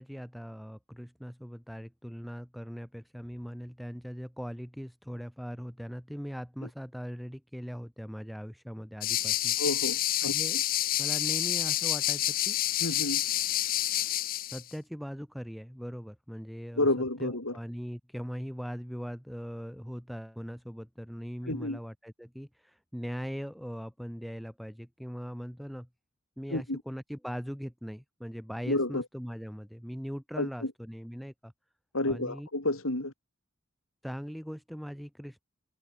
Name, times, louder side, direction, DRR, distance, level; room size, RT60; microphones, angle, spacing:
voice 1, 0.0-9.6 10.2-10.6 11.0-12.6 14.5-25.9 26.4-31.5 32.1-32.5 34.0-35.4, equal, ahead, 4.1 m, -40 dB
sound 1, 9.0-14.6, left 13 dB, 40° left, 0.6 m, -28 dB
voice 2, 9.6-10.3 12.8-13.2 16.8-17.6 21.4-21.8 26.5-26.8 28.7-29.0 30.4-30.7 31.9-33.1, left 2 dB, 75° left, 3.7 m, -30 dB
head